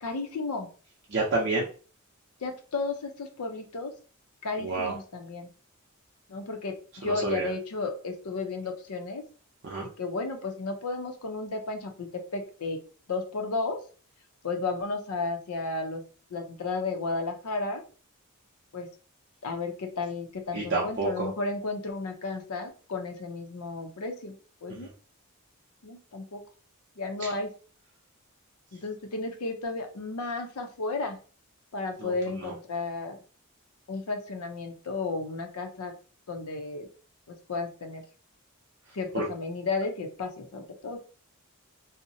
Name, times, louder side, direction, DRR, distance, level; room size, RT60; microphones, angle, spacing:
voice 1, 0.0-0.7 2.4-3.9 4.4-5.5 6.3-9.2 10.0-12.8 13.1-13.8 14.4-16.0 16.3-17.8 18.7-18.9 19.4-24.4 24.6-24.9 25.8-26.4 27.0-27.5 28.7-31.2 31.7-33.2 33.9-35.9 36.3-36.9 37.3-38.0 38.9-41.0, left 3 dB, 90° left, 5 dB, 0.6 m, -33 dB
voice 2, 1.1-1.7 4.6-4.9 7.0-7.5 9.6-9.9 20.5-21.3 27.2-27.3 32.0-32.1 32.4-32.5 39.1-39.2, right 3 dB, 50° right, -4 dB, 0.5 m, -29 dB
2.6 x 2.0 x 2.6 m, 0.38 s
head